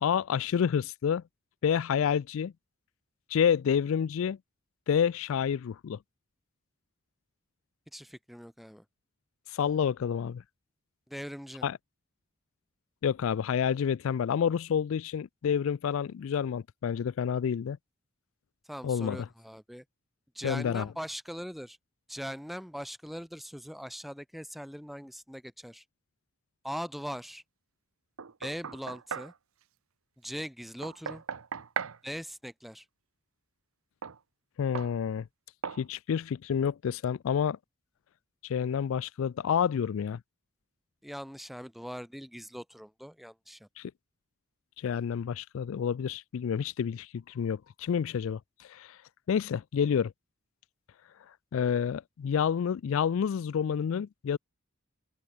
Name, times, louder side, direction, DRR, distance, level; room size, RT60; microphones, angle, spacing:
voice 1, 0.0-1.2 1.6-2.5 3.3-4.4 4.9-6.0 9.5-10.4 11.6-11.8 13.0-17.8 18.8-19.3 20.4-20.9 34.6-35.3 35.8-37.6 38.4-40.2 43.8-43.9 44.8-48.4 48.7-49.0 49.3-50.1 51.5-54.4, left 7 dB, 70° left, 0.3 m, -29 dB
voice 2, 7.9-8.8 11.1-11.7 18.7-19.8 20.3-21.8 22.1-25.8 26.6-27.4 28.4-29.3 30.2-31.2 32.0-32.8 41.0-43.7, equal, ahead, 1.3 m, -41 dB
Knock, 28.2-29.4 30.8-32.0 34.0-34.2 34.8-35.0 35.6-35.9, right 6 dB, 80° right, 0.8 m, -37 dB
head